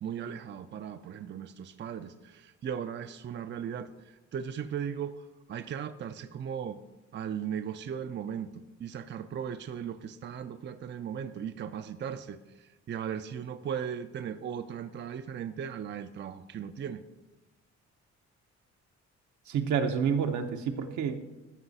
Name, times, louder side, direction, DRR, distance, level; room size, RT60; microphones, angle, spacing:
voice 1, 0.0-6.8 7.1-17.0, right 8 dB, 40° right, 9 dB, 0.5 m, -37 dB
voice 2, 19.5-21.2, right 7 dB, 75° right, 6 dB, 0.9 m, -29 dB
13.0 x 5.6 x 4.1 m, 1.1 s
cardioid pair, 90°, 30 cm